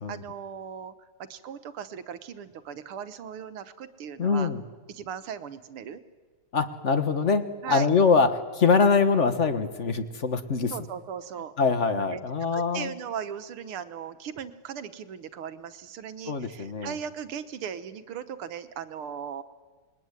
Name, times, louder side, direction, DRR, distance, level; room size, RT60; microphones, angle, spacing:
voice 1, 0.1-0.9 1.2-4.5 4.9-6.0 7.6-7.9 10.7-11.5 11.9-12.2 12.5-19.4, right 8 dB, 90° right, 11 dB, 2.1 m, -37 dB
voice 2, 4.2-4.6 6.5-10.7 11.6-12.9 16.3-17.0, left 5 dB, 40° left, 10 dB, 1.4 m, -24 dB
27.5 x 21.5 x 9.7 m, 1.4 s
omnidirectional pair, 2.3 m